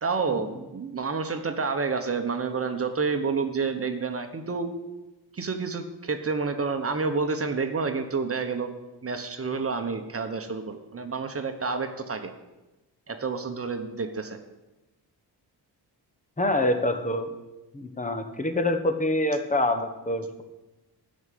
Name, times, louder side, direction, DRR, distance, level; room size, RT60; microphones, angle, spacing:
voice 1, 0.0-4.7 5.3-8.7 9.0-12.3 13.1-14.4, right 4 dB, 35° right, 6 dB, 1.2 m, -29 dB
voice 2, 16.4-17.3 17.7-20.4, left 1 dB, 20° left, 7 dB, 1.3 m, -26 dB
12.0 x 6.4 x 9.3 m, 1.1 s
wide cardioid pair, 125°, 41 cm